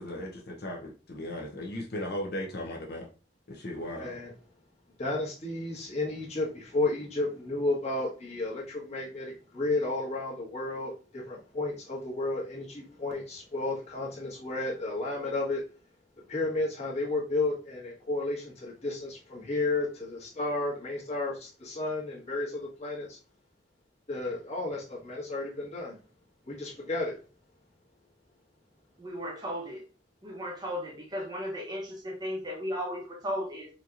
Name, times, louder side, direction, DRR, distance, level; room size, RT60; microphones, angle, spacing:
voice 1, 0.0-3.1 3.5-4.1, left 1 dB, 55° left, 0.7 m, -37 dB
voice 2, 4.0-4.3 5.0-15.6 16.3-23.2 24.1-26.0 26.5-27.2, left 2 dB, 35° left, 1.3 m, -32 dB
voice 3, 29.0-29.8 30.2-33.7, equal, 20° right, 0.8 m, -35 dB
4.3 x 2.8 x 2.5 m
head